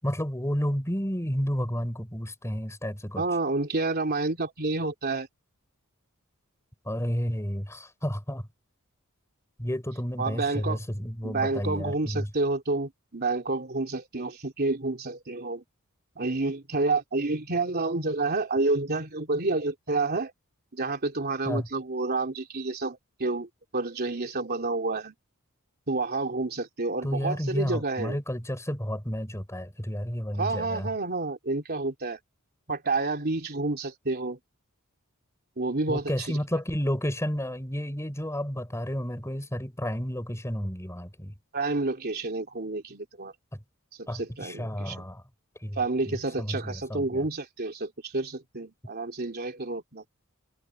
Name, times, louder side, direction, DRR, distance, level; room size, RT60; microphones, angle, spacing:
voice 1, 0.0-3.3 6.8-8.5 9.6-12.3 21.4-21.7 27.0-30.9 35.9-41.3 43.5-43.6 44.1-45.2 45.6-45.8 46.1-47.3, equal, 15° left, 5.0 m, -31 dB
voice 2, 3.2-5.3 10.2-10.8 11.2-15.6 16.2-20.3 20.7-25.1 25.9-28.2 30.4-32.2 32.7-34.4 35.6-36.4 41.5-43.3 44.0-44.9 45.7-50.0, right 3 dB, 45° right, 3.3 m, -29 dB
head